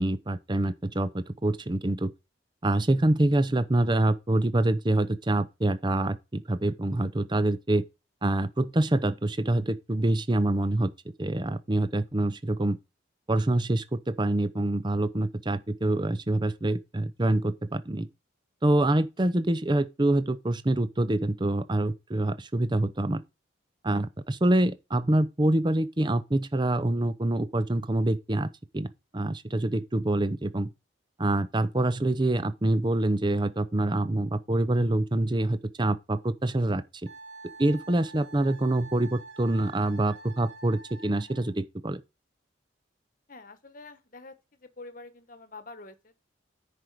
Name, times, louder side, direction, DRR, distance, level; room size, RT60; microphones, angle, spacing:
voice 1, 0.0-2.1 2.6-7.8 8.2-10.9 11.2-12.8 13.3-18.1 18.6-23.2 23.8-28.9 29.1-30.7 31.2-36.8 37.6-42.0, right 1 dB, 25° right, 0.6 m, -26 dB
Wind instrument woodwind instrument, 37.1-41.5, right 3 dB, 70° right, 2.2 m, -47 dB
voice 2, 43.3-44.3 44.6-46.2, left 3 dB, 45° left, 1.2 m, -46 dB
9.8 x 5.2 x 4.7 m
head